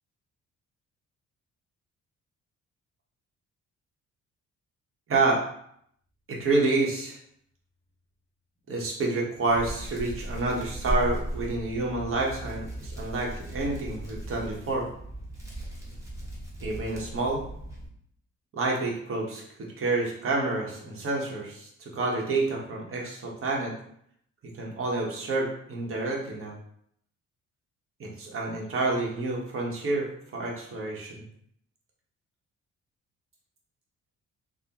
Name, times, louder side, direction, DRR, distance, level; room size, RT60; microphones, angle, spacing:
voice 1, 5.1-5.4 6.3-7.2 8.7-14.9 16.6-17.4 18.5-23.7 24.6-26.5 28.0-31.2, right 3 dB, 45° right, -2 dB, 1.0 m, -29 dB
Hands, 9.5-17.9, right 1 dB, 10° right, 1.0 m, -36 dB
3.4 x 2.1 x 2.9 m, 0.69 s
cardioid pair, 90°, 30 cm